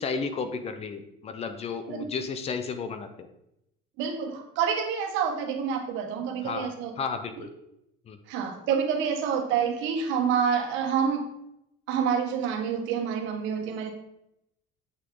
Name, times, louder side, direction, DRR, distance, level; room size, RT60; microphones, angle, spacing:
voice 1, 0.0-3.3 6.4-6.7 7.0-7.5 8.1-8.2, left 5 dB, 30° left, 9 dB, 0.7 m, -33 dB
voice 2, 4.0-6.9 8.3-11.3 11.9-13.9, right 7 dB, 70° right, 4 dB, 1.5 m, -27 dB
8.2 x 6.1 x 3.9 m, 0.81 s
cardioid pair, 160°, 20 cm